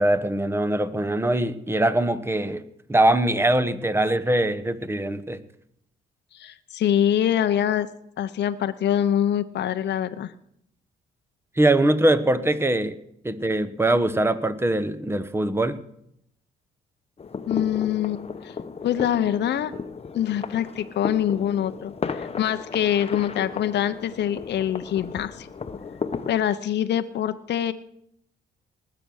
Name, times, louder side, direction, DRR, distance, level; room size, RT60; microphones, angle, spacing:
voice 1, 0.0-2.6 2.9-5.4 11.6-13.0 13.2-15.8, right 1 dB, 10° right, 13 dB, 1.0 m, -22 dB
voice 2, 6.3-7.9 8.2-10.3 17.5-18.5 18.8-19.7 20.1-25.5 26.3-27.7, left 10 dB, 60° left, 10 dB, 0.7 m, -24 dB
sound 1, 17.2-26.3, left 5 dB, 30° left, 0.9 m, -34 dB
19.5 x 6.9 x 6.3 m, 0.74 s
cardioid pair, 90°, 20 cm